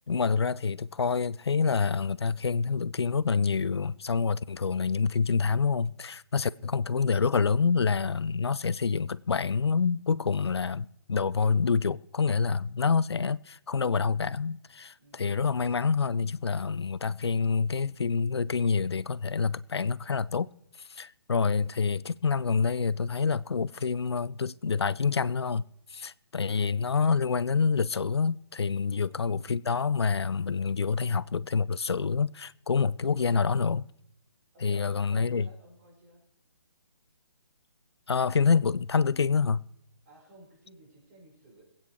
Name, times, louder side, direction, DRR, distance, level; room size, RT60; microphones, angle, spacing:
voice 1, 0.1-20.5 20.9-25.6 25.9-33.9 34.6-35.5 38.1-39.6, left 5 dB, 80° left, 0.5 m, -27 dB
voice 2, 6.4-6.7 15.0-15.3 26.3-26.7 28.8-29.5 34.5-36.2 40.1-41.6, right 2 dB, 35° right, 5.2 m, -55 dB
21.5 x 8.8 x 4.6 m
figure-of-eight pair, 145°, 13 cm